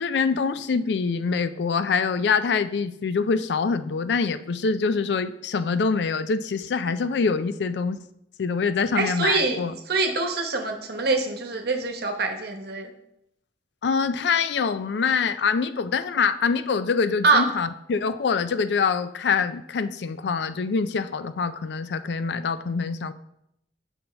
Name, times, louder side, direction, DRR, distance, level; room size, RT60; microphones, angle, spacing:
voice 1, 0.0-8.0 8.4-9.8 13.8-23.1, left 5 dB, 70° left, 12 dB, 0.4 m, -25 dB
voice 2, 9.0-9.6 9.9-12.9 17.2-17.4, right 3 dB, 65° right, 4 dB, 1.0 m, -24 dB
8.6 x 5.4 x 3.5 m, 0.78 s
head